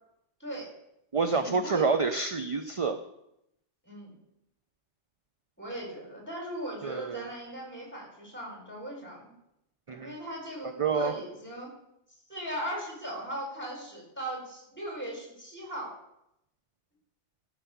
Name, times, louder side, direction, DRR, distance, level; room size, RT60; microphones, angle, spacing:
voice 1, 0.4-0.7 1.3-1.9 3.8-4.2 5.6-9.3 10.0-11.7 12.3-15.9, right 1 dB, 10° left, -1 dB, 4.3 m, -38 dB
voice 2, 1.1-3.0 6.8-7.3 9.9-10.2 10.8-11.1, right 4 dB, 35° right, 8 dB, 0.6 m, -28 dB
13.5 x 6.5 x 7.1 m, 0.84 s
omnidirectional pair, 1.2 m